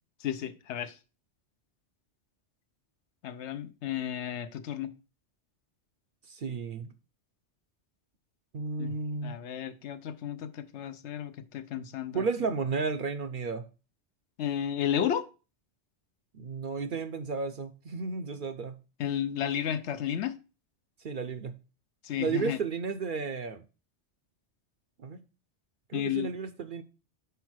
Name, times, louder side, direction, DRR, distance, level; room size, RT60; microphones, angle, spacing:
voice 1, 0.2-1.0 3.2-4.9 8.8-8.9 9.2-12.2 14.4-15.3 19.0-20.3 22.0-22.6 25.9-26.3, left 9 dB, 75° left, 0.9 m, -32 dB
voice 2, 6.3-6.9 8.5-9.4 12.1-13.6 16.3-18.8 21.0-21.6 22.2-23.6 25.0-25.2 25.9-26.8, right 5 dB, 55° right, 0.7 m, -33 dB
5.7 x 4.7 x 6.1 m
omnidirectional pair, 1.2 m